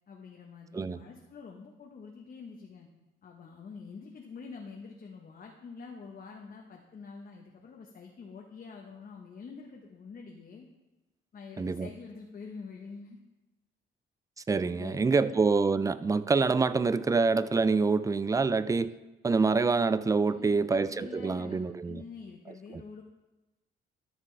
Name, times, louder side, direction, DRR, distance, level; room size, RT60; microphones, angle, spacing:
voice 1, 0.1-2.9 3.2-10.7 11.3-13.2 14.8-15.4 20.2-23.0, left 5 dB, 45° left, 1.1 m, -46 dB
voice 2, 11.6-11.9 14.5-18.9 19.2-22.0, right 4 dB, 15° right, 0.3 m, -26 dB
12.5 x 6.7 x 3.3 m
cardioid pair, 90°, 20 cm